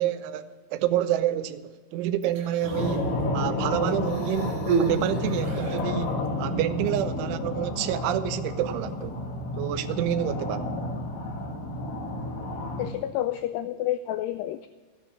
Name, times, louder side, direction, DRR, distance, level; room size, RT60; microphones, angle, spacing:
voice 1, 0.0-9.2 9.5-10.7, right 11 dB, 85° right, 3.2 m, -28 dB
Human voice, 2.2-3.1 4.0-6.0 6.9-7.0, right 6 dB, 60° right, 3.3 m, -31 dB
sound 1, 2.6-12.9, left 1 dB, 65° left, 3.9 m, -30 dB
voice 2, 12.8-14.7, left 12 dB, 85° left, 2.3 m, -29 dB
15.0 x 9.9 x 7.3 m
omnidirectional pair, 5.3 m